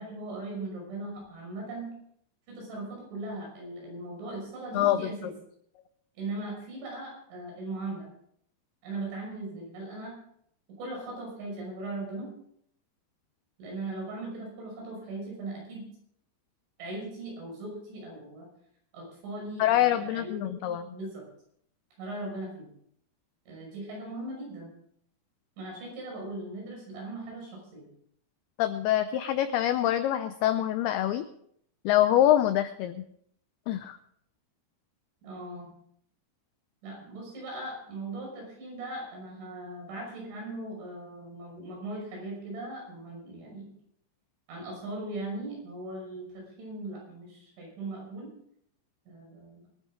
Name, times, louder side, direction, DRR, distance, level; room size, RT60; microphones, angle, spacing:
voice 1, 0.0-1.9 2.5-5.3 6.2-8.1 8.8-10.2 10.8-12.3 13.6-15.8 16.8-18.5 18.9-21.2 22.0-22.7 23.5-24.7 25.6-27.9 35.2-35.7 36.8-43.7 44.5-48.3 49.1-49.7, right 2 dB, 85° right, -2 dB, 8.2 m, -39 dB
voice 2, 4.7-5.1 19.6-21.0 28.6-31.3 31.9-33.0 33.7-34.0, left 12 dB, 90° left, 10 dB, 2.2 m, -25 dB
24.5 x 10.0 x 3.7 m, 0.68 s
omnidirectional pair, 5.3 m